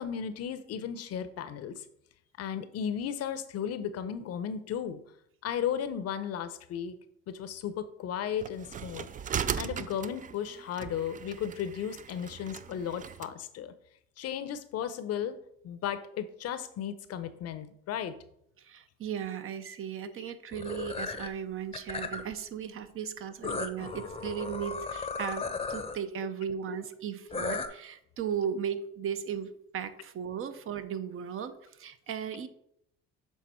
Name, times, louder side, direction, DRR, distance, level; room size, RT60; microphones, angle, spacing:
voice 1, 0.0-1.8 2.4-5.0 5.4-7.0 7.3-9.1 9.5-13.7 14.2-15.4 15.6-18.2 23.8-23.9, left 8 dB, 55° left, 12 dB, 0.7 m, -35 dB
sound 1, 8.4-13.3, right 8 dB, 30° right, 0.3 m, -38 dB
voice 2, 18.6-32.5, right 8 dB, 50° right, 11 dB, 0.7 m, -36 dB
sound 2, 20.5-21.3 21.7-22.3 23.4-26.0 27.3-27.7, left 4 dB, 20° left, 0.7 m, -35 dB
7.3 x 3.6 x 4.4 m, 0.73 s
supercardioid pair, 75°, 29 cm